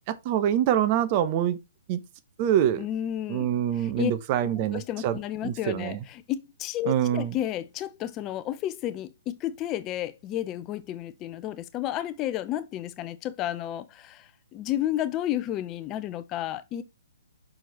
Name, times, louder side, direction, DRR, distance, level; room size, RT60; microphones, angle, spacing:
voice 1, 0.1-1.6 1.9-2.0 2.4-2.9 3.3-6.0 6.9-7.3, right 10 dB, 35° right, 1.0 m, -25 dB
voice 2, 2.8-3.5 3.8-4.1 4.7-16.8, left 12 dB, 25° left, 0.8 m, -32 dB
6.4 x 4.6 x 4.5 m
hypercardioid pair, 140°, 0 cm